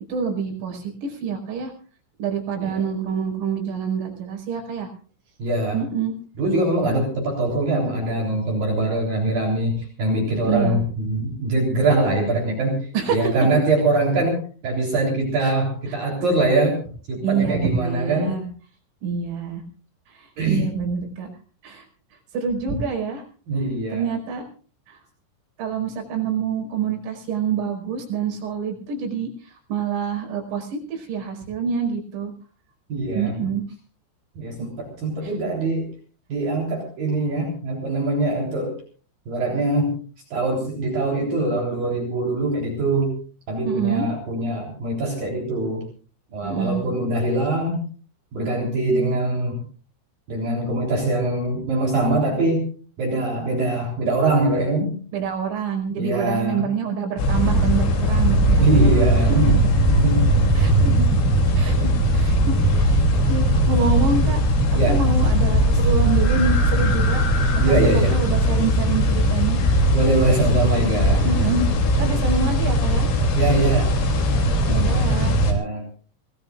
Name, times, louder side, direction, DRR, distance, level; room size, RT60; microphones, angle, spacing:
voice 1, 0.0-1.7 2.2-4.9 5.7-6.1 10.5-10.8 12.9-13.3 15.4-15.5 15.9-16.0 17.2-18.5 19.0-19.6 20.1-21.3 21.6-21.9 22.3-23.2 23.9-24.4 24.9-25.0 25.6-32.3 33.2-33.6 34.6-34.7 35.2-35.3 43.7-44.1 46.4-46.9 55.1-58.9 59.5-59.6 60.6-61.2 61.6-63.0 63.3-64.4 64.7-67.2 67.7-69.6 71.2-73.1 74.7-75.4, right 5 dB, 75° right, 0 dB, 7.5 m, -26 dB
voice 2, 5.4-5.8 6.4-12.8 13.1-16.8 17.1-18.4 20.4-20.7 23.5-24.1 32.9-33.3 34.4-35.9 36.3-38.7 39.3-40.0 40.3-43.2 43.5-45.8 46.3-47.8 48.3-49.6 50.3-52.6 53.0-55.0 56.0-56.7 58.6-59.6 59.9-60.4 64.8-65.0 67.6-68.1 69.9-71.3 71.6-71.7 73.4-73.9 75.4-75.8, right 2 dB, 45° right, 0 dB, 5.1 m, -22 dB
sound 1, 57.2-75.5, equal, 70° left, 5.4 m, -19 dB
25.0 x 19.0 x 2.5 m, 0.40 s
omnidirectional pair, 5.8 m